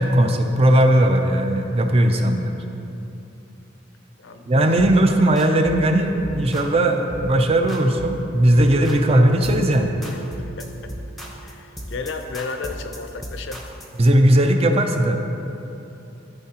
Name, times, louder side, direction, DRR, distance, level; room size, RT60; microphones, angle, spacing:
voice 1, 0.0-2.4 4.5-9.9 14.0-15.2, right 1 dB, 30° right, 5 dB, 0.5 m, -17 dB
voice 2, 4.2-4.9 10.3-10.9 11.4-13.6, left 4 dB, 70° left, 6 dB, 0.6 m, -34 dB
sound 1, 4.8-5.0 5.4-5.9 6.2-6.8 7.1-7.3 7.7-8.2 8.6-9.1 9.4-9.8 10.0-14.0, equal, ahead, 0.7 m, -36 dB
Acoustic guitar, 8.5-11.9, right 10 dB, 90° right, 0.7 m, -39 dB
14.0 x 4.7 x 2.9 m, 2.9 s
head